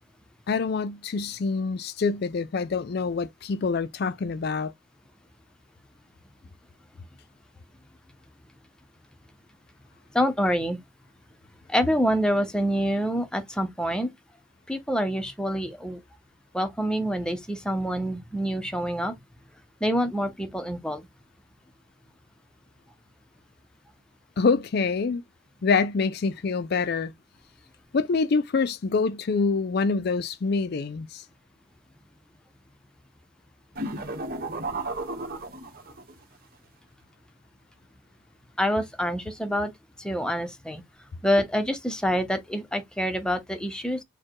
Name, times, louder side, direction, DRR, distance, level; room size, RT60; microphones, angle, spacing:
voice 1, 0.5-4.7 24.4-25.2 25.6-27.1 27.9-31.2, left 4 dB, 55° left, 0.4 m, -26 dB
voice 2, 10.1-10.8 11.7-14.1 14.7-16.0 16.5-19.1 19.8-21.1 38.6-39.7 40.0-40.8 41.2-44.0, equal, 5° left, 0.7 m, -26 dB
sound 1, 33.7-36.1, right 2 dB, 50° right, 1.2 m, -33 dB
4.4 x 2.2 x 4.6 m
head